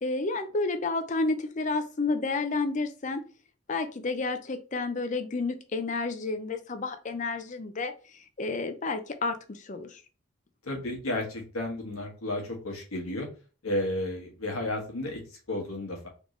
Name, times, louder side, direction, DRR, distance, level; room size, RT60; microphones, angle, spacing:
voice 1, 0.0-3.2 3.7-7.9 8.4-10.0, left 3 dB, 35° left, 9 dB, 0.5 m, -30 dB
voice 2, 10.6-13.3 13.6-16.1, left 1 dB, 85° left, 0 dB, 1.5 m, -32 dB
3.8 x 3.5 x 3.2 m, 0.36 s
head